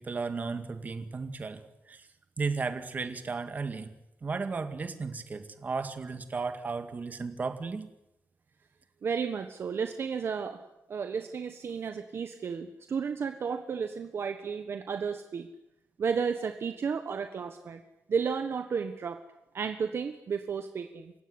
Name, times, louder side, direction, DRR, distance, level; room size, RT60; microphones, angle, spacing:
voice 1, 0.0-2.1 2.4-3.9 4.2-7.9, right 4 dB, 30° right, 8 dB, 2.1 m, -34 dB
voice 2, 9.0-10.6 10.9-15.5 16.0-17.8 18.1-19.2 19.5-21.1, right 6 dB, 45° right, 7 dB, 1.3 m, -33 dB
29.0 x 16.5 x 9.7 m, 0.90 s
wide cardioid pair, 175°, 6 cm